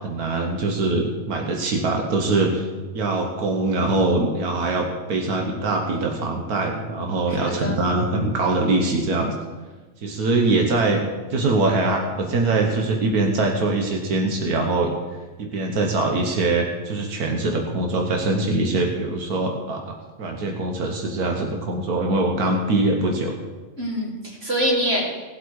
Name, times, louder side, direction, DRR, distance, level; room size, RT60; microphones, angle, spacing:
voice 1, 0.0-2.7 2.9-9.3 10.0-14.9 15.4-23.4, right 2 dB, 90° right, 2 dB, 1.7 m, -23 dB
voice 2, 7.3-7.8 23.8-25.0, equal, 40° right, -4 dB, 3.8 m, -25 dB
18.0 x 8.1 x 4.7 m, 1.3 s
omnidirectional pair, 1.5 m